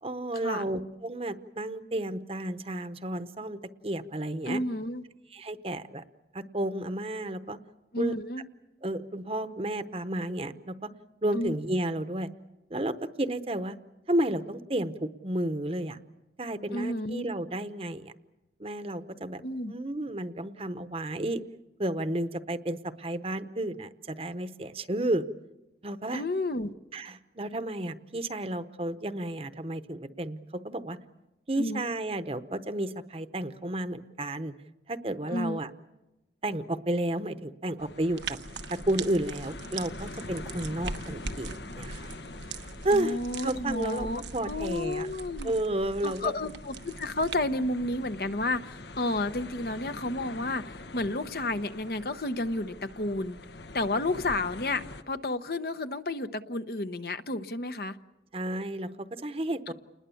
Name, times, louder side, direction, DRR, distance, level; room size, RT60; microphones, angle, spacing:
voice 1, 0.0-4.6 5.3-6.0 6.3-7.6 8.0-8.1 8.8-10.9 11.2-12.3 12.7-13.8 14.1-16.0 16.4-18.1 18.6-19.4 19.7-21.4 21.8-25.2 25.8-26.2 26.9-31.0 31.5-34.5 34.9-35.7 36.4-38.4 38.7-42.1 42.8-45.1 45.4-46.3 58.3-59.7, right 1 dB, 35° right, 11 dB, 0.9 m, -32 dB
voice 2, 4.5-5.0 7.9-8.5 11.3-11.6 16.7-17.3 19.4-19.7 26.1-26.7 31.6-31.9 35.3-35.6 42.9-45.5 46.0-53.4 53.7-58.0 59.7-59.8, left 2 dB, 60° left, 10 dB, 0.9 m, -31 dB
sound 1, 37.8-55.0, left 2 dB, 85° left, 1.2 m, -45 dB
sound 2, 38.2-47.4, right 4 dB, 90° right, 1.2 m, -41 dB
29.5 x 20.5 x 7.1 m, 0.98 s
head